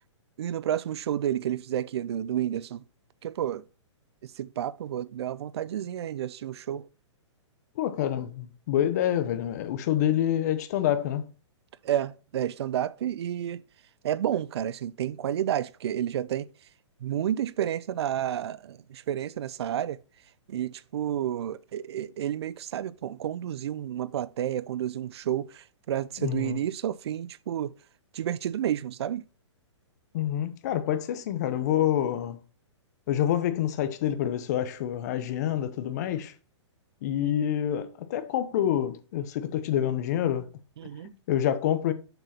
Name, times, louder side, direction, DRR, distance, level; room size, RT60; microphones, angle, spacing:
voice 1, 0.4-2.8 3.2-3.6 4.2-6.9 11.8-13.6 14.0-16.5 17.0-20.0 20.5-27.7 28.1-29.2 37.2-37.3 40.8-41.1, right 10 dB, 60° right, 0.4 m, -30 dB
voice 2, 7.8-11.3 26.2-26.6 30.1-32.4 33.1-36.3 37.0-40.5 41.0-41.9, left 11 dB, 35° left, 0.8 m, -27 dB
6.8 x 6.1 x 2.9 m
hypercardioid pair, 165°, 16 cm